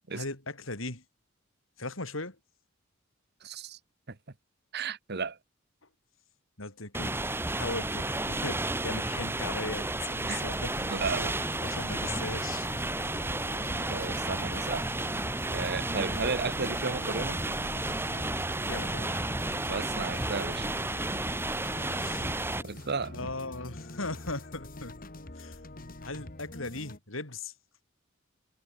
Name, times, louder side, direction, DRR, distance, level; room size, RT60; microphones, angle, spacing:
voice 1, 0.1-1.0 1.8-2.4 6.6-7.2 7.5-10.7 11.6-12.7 18.6-19.2 22.0-22.4 23.1-24.9 25.3-25.6 26.0-27.5, left 2 dB, 70° left, 5.7 m, -38 dB
voice 2, 3.4-3.8 4.1-4.2 4.7-5.4 10.3-10.5 10.8-11.4 13.9-14.9 15.5-17.4 19.7-20.7 22.6-23.3, right 4 dB, 55° right, 1.3 m, -34 dB
sound 1, 6.9-22.6, right 2 dB, 10° right, 1.5 m, -32 dB
sound 2, 10.3-27.0, left 2 dB, 45° left, 1.9 m, -45 dB
head